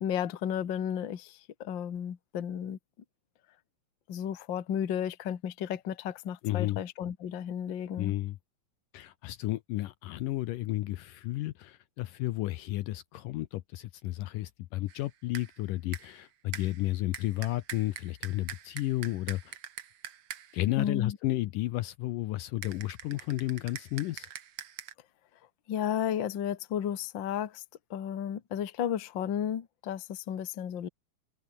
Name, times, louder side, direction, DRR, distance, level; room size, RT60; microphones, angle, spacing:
voice 1, 0.0-2.8 4.1-8.1 20.8-21.2 25.7-27.6 27.9-30.9, left 9 dB, 45° left, 1.6 m, -33 dB
voice 2, 6.4-6.8 8.0-8.4 8.9-19.6 20.5-24.3, left 16 dB, 75° left, 2.2 m, -32 dB
castanets wet, 14.9-15.1 15.3-15.6 15.9-16.2 16.5-20.7 22.6-24.9, right 9 dB, 55° right, 1.7 m, -44 dB
omnidirectional pair, 4.2 m